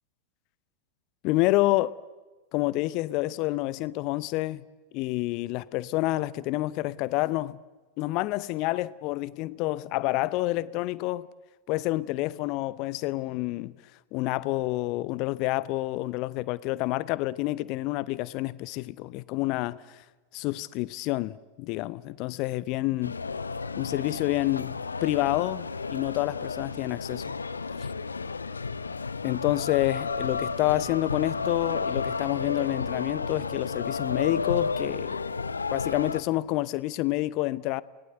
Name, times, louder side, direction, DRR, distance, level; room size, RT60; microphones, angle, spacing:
voice 1, 1.2-2.0 2.5-4.6 4.9-7.6 8.0-11.3 11.7-13.7 14.1-20.0 20.3-23.2 23.8-27.3 27.8-27.9 29.2-35.2 35.7-37.8, left 18 dB, 40° left, 0.7 m, -28 dB
sound 1, 23.0-36.2, left 4 dB, 75° left, 1.0 m, -32 dB
29.5 x 18.5 x 7.9 m
figure-of-eight pair, 90°, 0 cm